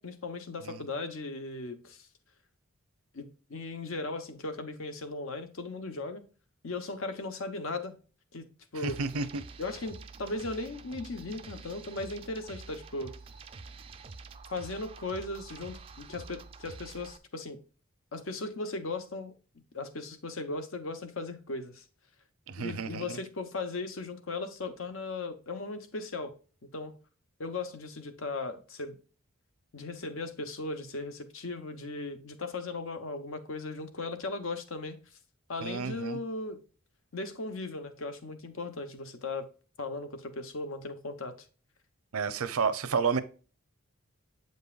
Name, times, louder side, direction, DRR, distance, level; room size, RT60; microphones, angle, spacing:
voice 1, 0.0-2.1 3.1-6.2 6.6-8.0 8.3-9.0 9.6-13.1 14.5-17.6 18.1-19.3 19.7-21.8 22.6-26.3 26.7-26.9 27.4-29.0 29.7-35.0 35.5-36.6 37.1-39.5 39.8-41.3, left 3 dB, 70° left, 0.8 m, -37 dB
sound 1, 8.8-17.2, right 4 dB, 25° right, 0.3 m, -47 dB
voice 2, 8.8-9.4 22.5-23.2 35.6-36.2 42.1-43.2, right 5 dB, 80° right, 0.6 m, -31 dB
7.8 x 5.4 x 2.4 m
head